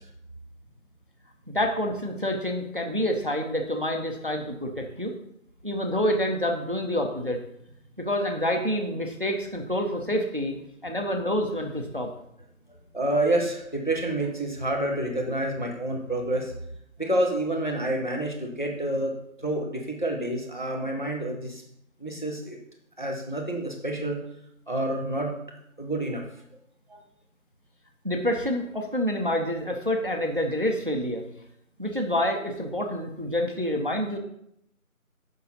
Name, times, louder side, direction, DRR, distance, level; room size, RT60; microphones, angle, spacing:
voice 1, 1.5-5.1 5.6-7.4 8.0-10.6 10.8-12.1 28.0-31.3 31.8-34.2, equal, 40° right, 3 dB, 0.8 m, -27 dB
voice 2, 12.9-16.5 17.0-19.1 19.4-21.6 22.0-22.6 23.0-24.2 24.7-25.3 25.8-26.2 26.9-27.0, right 1 dB, 35° left, 1 dB, 1.0 m, -28 dB
6.8 x 5.6 x 4.0 m, 0.76 s
figure-of-eight pair, 175°, 42 cm